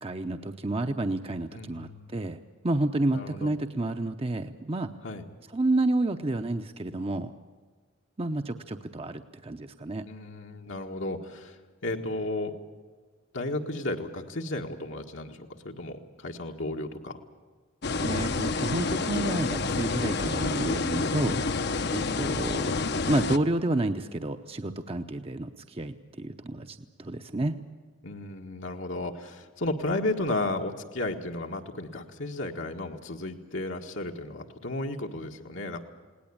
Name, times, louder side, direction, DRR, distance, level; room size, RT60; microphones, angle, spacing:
voice 1, 0.0-2.4 2.6-4.9 5.5-7.3 8.2-10.1 18.0-21.4 21.9-22.7 23.1-27.5, right 2 dB, 30° right, 7 dB, 0.8 m, -30 dB
voice 2, 1.5-2.2 3.1-3.5 5.0-5.3 10.0-12.5 13.3-17.2 28.0-35.8, left 2 dB, 80° left, 2 dB, 1.8 m, -34 dB
sound 1, 17.8-23.4, left 3 dB, 60° left, 0.9 m, -28 dB
21.0 x 18.0 x 8.7 m, 1.5 s
head